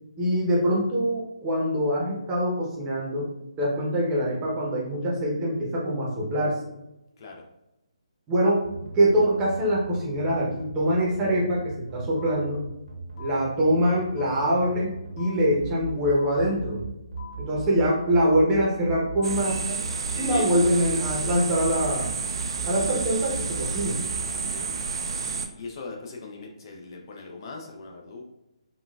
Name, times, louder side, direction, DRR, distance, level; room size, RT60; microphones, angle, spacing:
voice 1, 0.2-3.3 3.6-6.6 8.3-8.6 8.9-12.6 13.2-16.8 17.4-19.8 20.2-22.1 22.7-24.0, equal, 20° right, -4 dB, 0.8 m, -24 dB
voice 2, 7.2-7.5 20.1-20.6 24.3-24.8 25.5-28.2, left 3 dB, 40° left, 0 dB, 0.5 m, -40 dB
sound 1, 8.6-24.2, right 5 dB, 80° right, 0.9 m, -38 dB
sound 2, 12.2-12.3 13.2-13.3 14.2-14.3 15.2-15.3 16.2-16.3 17.2-17.3 18.2-18.3 19.2-19.3 20.2-20.3, left 7 dB, 55° left, 0.8 m, -44 dB
sound 3, 19.2-25.5, right 5 dB, 50° right, 0.3 m, -30 dB
3.6 x 2.3 x 2.3 m, 0.91 s
figure-of-eight pair, 145°, 4 cm